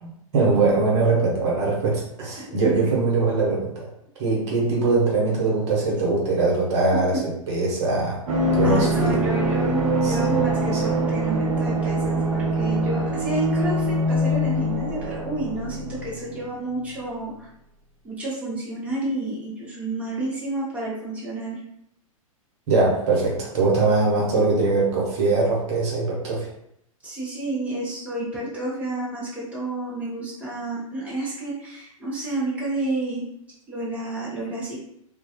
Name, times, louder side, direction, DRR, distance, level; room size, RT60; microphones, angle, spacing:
voice 1, 0.0-3.9 4.2-8.2 8.5-9.2 10.0-10.3 10.7-10.8 22.7-26.5, right 3 dB, 50° right, -4 dB, 1.0 m, -22 dB
voice 2, 2.4-2.8 7.1-7.2 8.6-17.5 18.0-21.6 27.0-33.2 33.7-34.8, right 2 dB, 5° right, -7 dB, 0.8 m, -30 dB
sound 1, 8.3-16.8 17.0-17.1, right 1 dB, 70° right, 0.6 m, -24 dB
2.3 x 2.2 x 2.8 m, 0.75 s
hypercardioid pair, 110°, 18 cm